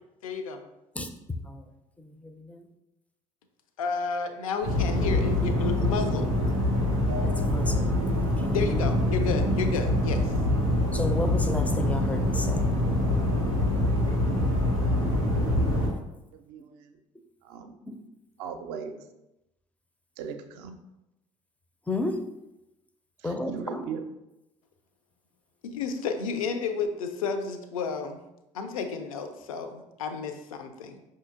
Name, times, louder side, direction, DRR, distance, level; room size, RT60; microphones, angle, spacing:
voice 1, 0.2-0.6 3.8-6.3 8.5-10.3 25.6-28.2 28.5-31.0, left 5 dB, 70° left, 8 dB, 0.4 m, -31 dB
voice 2, 2.0-2.7 7.2-7.8 8.4-8.8 10.9-12.6 17.9-18.0 21.9-22.2 23.2-23.8, left 2 dB, 10° left, 7 dB, 0.4 m, -32 dB
sound 1, 4.6-15.9, left 1 dB, 90° left, 1.4 m, -25 dB
voice 3, 16.3-17.0 17.4-17.8 18.4-19.0 20.2-20.8 23.2-24.0, right 6 dB, 60° right, 7 dB, 0.5 m, -38 dB
5.4 x 2.7 x 2.4 m, 0.92 s
figure-of-eight pair, 50°, 18 cm